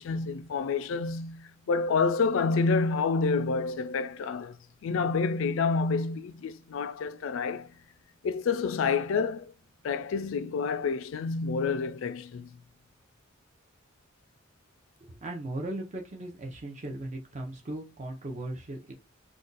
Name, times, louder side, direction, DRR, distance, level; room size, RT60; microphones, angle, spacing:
voice 1, 0.0-4.6 4.8-7.7 8.2-9.5 9.8-12.6, left 4 dB, 65° left, 0.3 m, -28 dB
voice 2, 15.0-18.9, right 1 dB, 35° right, 0.6 m, -37 dB
2.5 x 2.2 x 3.8 m
head